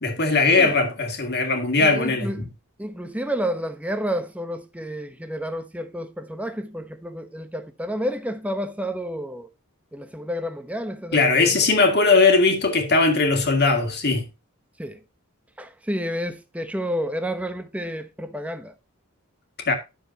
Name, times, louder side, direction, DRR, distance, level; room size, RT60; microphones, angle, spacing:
voice 1, 0.0-2.5 11.1-14.3 19.7-19.8, left 3 dB, 50° left, 2.1 m, -19 dB
voice 2, 1.8-2.4 2.8-9.5 9.9-11.6 14.8-15.0 15.6-18.7, equal, 5° right, 0.9 m, -30 dB
10.5 x 6.9 x 2.8 m
head